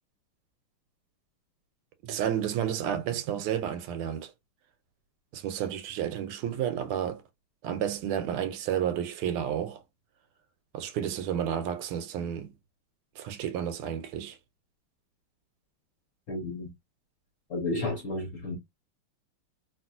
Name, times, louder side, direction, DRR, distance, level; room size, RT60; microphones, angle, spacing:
voice 1, 2.0-4.3 5.3-7.2 7.6-9.8 10.7-12.5 13.2-14.4, right 9 dB, 85° right, 1.5 m, -31 dB
voice 2, 16.3-16.7 17.5-18.6, left 2 dB, 55° left, 0.9 m, -32 dB
2.9 x 2.9 x 2.4 m
omnidirectional pair, 2.4 m